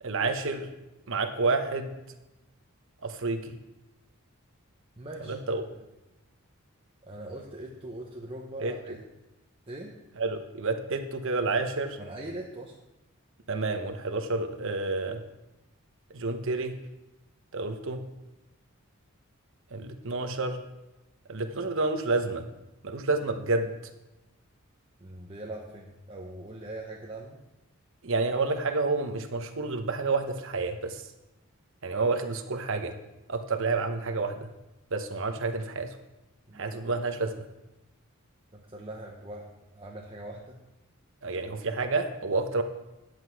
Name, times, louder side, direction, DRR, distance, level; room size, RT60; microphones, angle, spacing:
voice 1, 0.0-0.7 1.1-1.9 3.0-3.6 5.3-5.6 8.6-8.7 10.2-12.0 13.5-15.2 16.1-16.7 17.5-18.0 19.7-20.6 21.3-22.5 22.8-23.7 28.0-31.0 31.8-32.9 33.3-34.5 34.9-35.9 36.5-37.5 41.2-42.6, right 3 dB, 65° right, 7 dB, 1.0 m, -29 dB
voice 2, 5.0-5.6 7.1-9.0 9.7-9.9 12.0-12.7 25.0-27.4 36.5-36.9 38.5-40.6, right 1 dB, 25° right, -2 dB, 1.0 m, -41 dB
10.5 x 8.1 x 4.7 m, 1.0 s
head